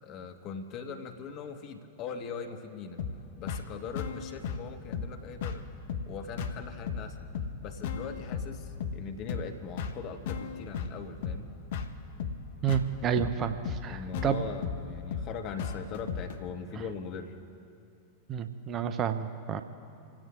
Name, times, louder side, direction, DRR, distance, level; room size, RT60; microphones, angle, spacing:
voice 1, 0.0-3.0 3.4-5.6 6.1-7.2 7.6-11.5 13.9-17.4, left 5 dB, 40° left, 6 dB, 1.4 m, -40 dB
sound 1, 3.0-16.4, left 6 dB, 55° left, 0.9 m, -36 dB
voice 2, 12.6-14.4 18.3-19.6, right 8 dB, 30° right, 9 dB, 0.8 m, -30 dB
28.5 x 16.5 x 2.5 m, 2.6 s
figure-of-eight pair, 90°, 0 cm